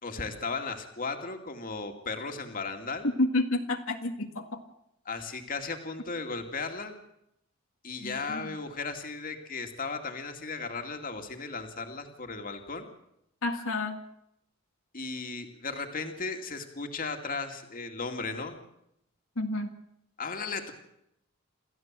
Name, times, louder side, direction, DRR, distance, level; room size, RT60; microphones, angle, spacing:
voice 1, 0.0-3.1 5.0-7.0 7.8-12.9 14.9-18.6 20.2-20.7, left 4 dB, 45° left, 5 dB, 2.4 m, -36 dB
voice 2, 3.2-4.6 8.0-8.5 13.4-14.0 19.4-19.7, left 2 dB, 80° left, 3 dB, 1.9 m, -30 dB
27.5 x 14.0 x 7.5 m, 0.79 s
head